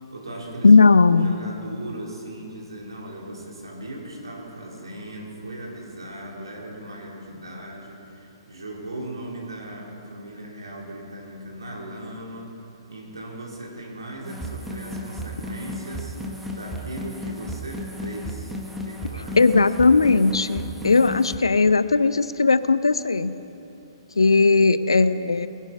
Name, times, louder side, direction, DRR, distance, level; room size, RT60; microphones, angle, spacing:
voice 1, 0.1-0.8 1.1-12.6 12.9-16.2 16.5-18.5 18.8-19.4, right 1 dB, 70° right, -2 dB, 3.4 m, -38 dB
voice 2, 0.6-1.3 19.4-23.3 24.2-25.5, left 4 dB, 70° left, 14 dB, 0.5 m, -17 dB
sound 1, 14.2-21.4, left 1 dB, 5° right, 1.3 m, -34 dB
20.0 x 10.5 x 5.8 m, 2.9 s
figure-of-eight pair, 120°, 3 cm